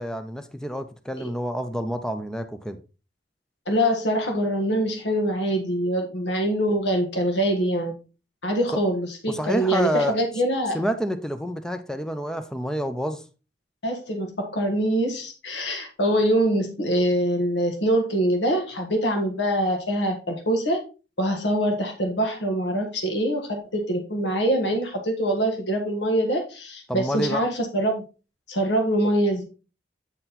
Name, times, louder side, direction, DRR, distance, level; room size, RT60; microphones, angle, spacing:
voice 1, 0.0-2.8 9.3-10.1 10.7-13.2 26.9-27.4, equal, 5° left, 0.5 m, -28 dB
voice 2, 3.7-7.9 8.4-10.8 13.8-20.8 21.2-28.0 28.5-29.4, right 1 dB, 75° left, 1.5 m, -24 dB
8.9 x 4.2 x 4.1 m
head